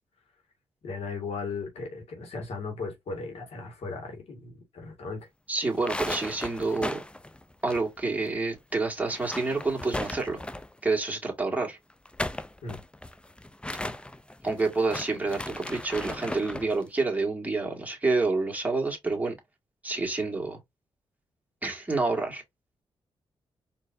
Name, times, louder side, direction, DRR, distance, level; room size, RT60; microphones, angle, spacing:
voice 1, 0.8-5.3 12.6-12.8, left 4 dB, 75° left, 2.1 m, -37 dB
voice 2, 5.5-7.0 7.6-10.4 10.8-11.8 13.7-13.8 14.4-19.4 19.8-20.6 21.6-22.4, right 3 dB, 15° right, 2.1 m, -28 dB
sound 1, 5.7-8.3 8.5-8.6 9.0-10.8 11.9-16.7, left 1 dB, 10° left, 0.5 m, -36 dB
4.4 x 3.3 x 2.7 m
cardioid pair, 65°, 10 cm